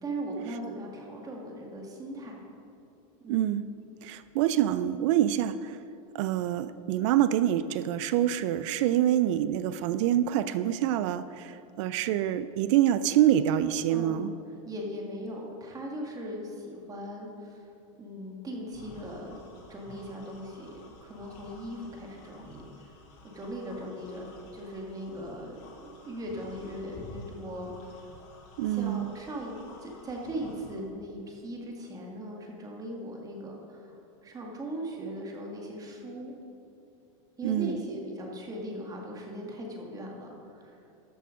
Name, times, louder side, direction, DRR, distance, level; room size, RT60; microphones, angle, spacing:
voice 1, 0.0-2.4 3.2-3.5 8.9-9.0 13.9-14.3 14.7-17.7 18.0-19.3 19.7-22.6 23.3-24.3 24.5-28.0 28.7-34.0 34.2-36.3 37.4-40.8, right 1 dB, 20° right, 0 dB, 1.9 m, -39 dB
voice 2, 3.3-3.6 4.0-5.8 6.1-14.3 28.6-29.1 37.4-37.8, right 11 dB, 65° right, 13 dB, 0.4 m, -26 dB
sound 1, 18.7-30.8, left 2 dB, 50° left, 2.5 m, -51 dB
13.0 x 6.7 x 5.2 m, 2.7 s
supercardioid pair, 130°, 17 cm